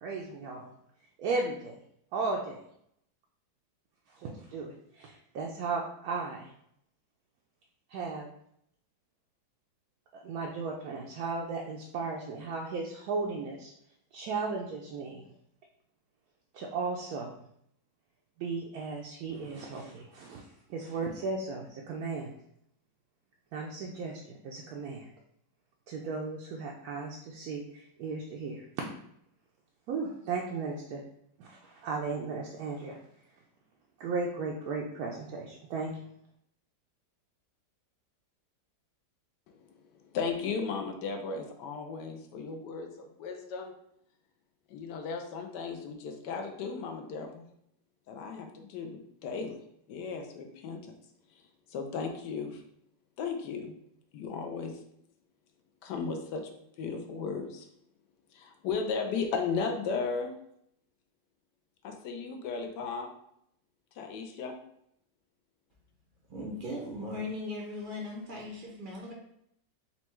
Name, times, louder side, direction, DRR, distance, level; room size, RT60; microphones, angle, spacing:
voice 1, 0.0-0.7 1.2-1.8 2.1-2.6 4.2-6.5 7.9-8.3 10.1-13.7 14.1-15.3 16.5-17.3 18.4-22.3 23.5-25.1 25.9-28.7 29.9-31.0 31.4-33.0 34.0-36.0, right 4 dB, 70° right, -1 dB, 0.9 m, -35 dB
voice 2, 39.5-43.7 44.7-47.4 48.1-49.6 49.9-50.9 51.7-52.6 53.2-53.7 54.1-54.8 55.8-56.5 56.8-57.6 58.3-60.3 61.8-63.1 64.0-64.5, left 5 dB, 75° left, 4 dB, 1.1 m, -35 dB
voice 3, 66.3-69.1, left 2 dB, 55° right, -2 dB, 0.5 m, -38 dB
4.2 x 2.2 x 4.3 m, 0.72 s
omnidirectional pair, 2.0 m